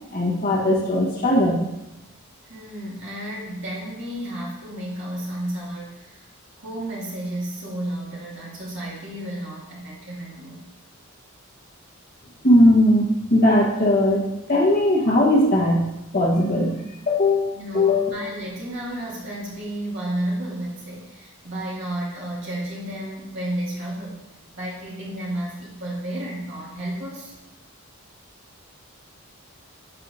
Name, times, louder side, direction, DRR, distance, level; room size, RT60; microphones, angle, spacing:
voice 1, 0.1-1.6 12.4-14.2 14.5-15.9 16.1-16.8 17.1-18.1, left 1 dB, 45° left, -3 dB, 1.4 m, -18 dB
voice 2, 2.4-6.3 6.6-10.7 17.5-24.2 24.5-27.4, right 1 dB, 55° right, -6 dB, 2.4 m, -32 dB
11.5 x 4.7 x 2.8 m, 0.95 s
head